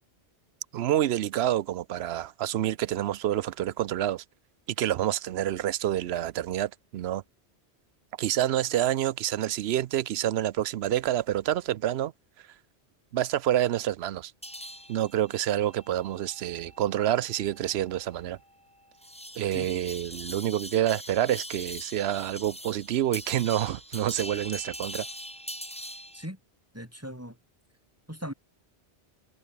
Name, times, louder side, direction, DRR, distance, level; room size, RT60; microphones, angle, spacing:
voice 1, 0.7-4.2 4.8-7.2 8.2-12.1 13.1-14.3 14.9-18.4 19.4-25.1, right 12 dB, 70° right, 0.8 m, -28 dB
sound 1, 14.4-26.3, equal, 5° left, 3.5 m, -43 dB
voice 2, 26.7-27.4 28.1-28.3, equal, 10° right, 7.7 m, -38 dB
omnidirectional pair, 1.1 m